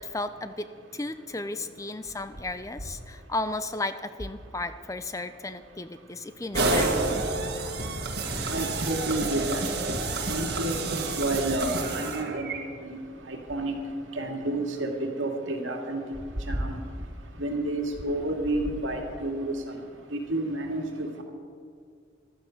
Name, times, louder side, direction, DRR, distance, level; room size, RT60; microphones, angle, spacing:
voice 1, 0.1-0.7 0.9-3.9 4.2-7.5, left 2 dB, 15° left, 11 dB, 0.5 m, -34 dB
sound 1, 6.5-12.6, right 2 dB, 55° right, 1.7 m, -29 dB
voice 2, 8.5-9.9 10.3-13.0 13.3-13.7 14.2-16.0 16.5-16.8 17.4-19.5 20.1-21.2, right 1 dB, 90° right, 2 dB, 2.1 m, -30 dB
14.5 x 12.5 x 6.4 m, 2.2 s
head